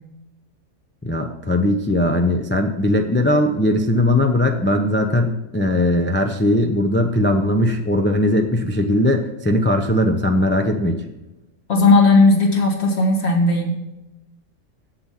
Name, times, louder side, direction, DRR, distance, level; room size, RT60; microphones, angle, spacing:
voice 1, 1.0-11.0, left 1 dB, 20° left, 4 dB, 0.3 m, -19 dB
voice 2, 11.7-13.8, left 3 dB, 55° left, 2 dB, 1.9 m, -15 dB
7.8 x 7.6 x 5.6 m, 1.0 s
omnidirectional pair, 1.4 m